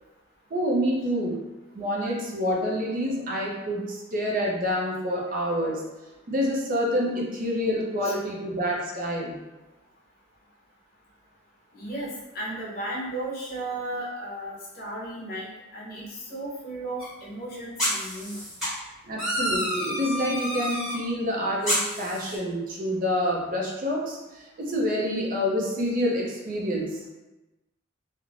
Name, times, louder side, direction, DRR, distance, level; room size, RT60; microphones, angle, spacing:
voice 1, 0.5-1.4 1.8-5.8 6.3-9.4 19.0-27.0, equal, 40° right, -2 dB, 0.4 m, -27 dB
voice 2, 11.7-12.1 12.3-18.4, right 1 dB, 45° left, -6 dB, 0.8 m, -35 dB
sound 1, 17.0-17.1 17.8-18.7 19.2-21.0 21.6-22.4, equal, 5° right, 1.3 m, -29 dB
3.0 x 2.0 x 2.4 m, 1.1 s
head